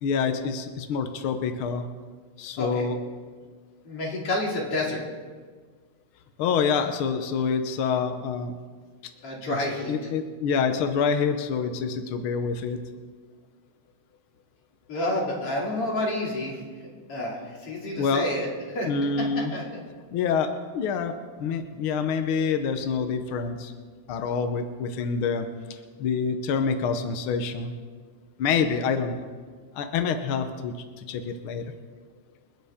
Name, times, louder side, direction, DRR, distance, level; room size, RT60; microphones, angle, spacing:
voice 1, 0.0-1.9 2.4-2.9 6.4-8.5 9.9-12.8 18.0-18.3 18.9-19.5 20.1-23.7 24.1-27.7 28.4-29.3 29.7-31.7, left 5 dB, 75° left, 7 dB, 1.2 m, -27 dB
voice 2, 3.9-5.0 9.2-10.0 14.9-16.6 17.1-18.9 19.2-19.3 19.5-19.8, left 1 dB, 50° left, -2 dB, 3.5 m, -29 dB
28.0 x 9.9 x 3.6 m, 1.6 s
omnidirectional pair, 3.5 m